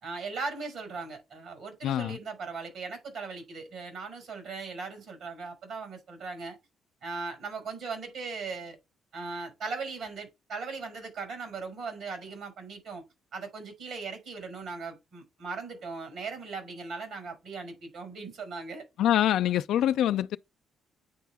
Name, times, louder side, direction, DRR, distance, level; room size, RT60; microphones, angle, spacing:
voice 1, 0.0-6.6 7.0-8.8 9.1-13.0 13.3-18.8, right 4 dB, 75° right, 5.6 m, -38 dB
voice 2, 1.8-2.2 19.0-20.4, left 11 dB, 80° left, 0.3 m, -25 dB
9.4 x 4.5 x 3.5 m
cardioid pair, 90°, 0 cm